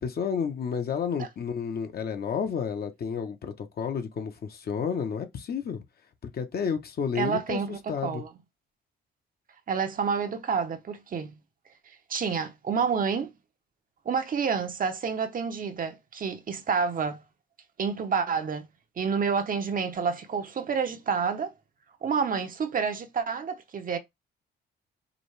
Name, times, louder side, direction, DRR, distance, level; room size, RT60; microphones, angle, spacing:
voice 1, 0.0-5.8 6.2-8.2, left 6 dB, 50° left, 1.0 m, -31 dB
voice 2, 7.2-8.3 9.7-11.4 12.1-13.3 14.0-17.2 17.8-18.7 19.0-21.5 22.0-24.0, right 6 dB, 45° right, 0.8 m, -29 dB
5.0 x 2.4 x 3.2 m
cardioid pair, 90°, 20 cm